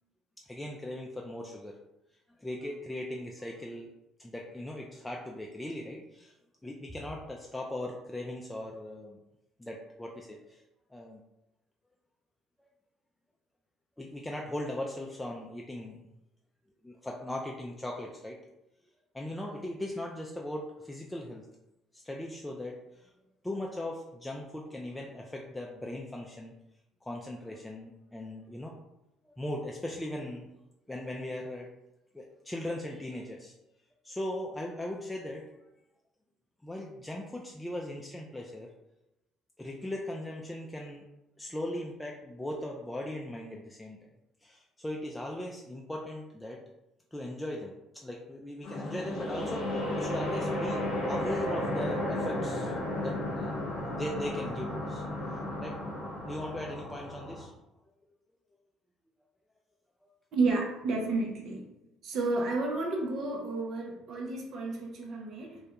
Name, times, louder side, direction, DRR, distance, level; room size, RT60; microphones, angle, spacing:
voice 1, 0.5-1.8 2.4-3.9 4.2-6.3 6.6-9.2 9.6-10.6 10.9-11.2 14.0-16.1 16.8-18.4 19.1-21.4 21.9-23.1 23.4-26.5 27.0-28.7 29.2-30.5 30.9-31.7 32.1-33.5 34.0-35.5 36.6-38.7 39.6-41.1 41.4-44.0 44.4-46.6 47.1-50.8 51.1-55.0 55.6-55.8 56.2-57.5 60.0-60.1, left 1 dB, 10° left, -1 dB, 0.3 m, -39 dB
sound 1, 48.6-57.4, left 1 dB, 60° left, 0.7 m, -34 dB
voice 2, 60.3-61.7 62.0-65.6, right 3 dB, 60° right, 0 dB, 0.6 m, -31 dB
2.2 x 2.1 x 2.8 m, 0.93 s
hypercardioid pair, 60°, 0 cm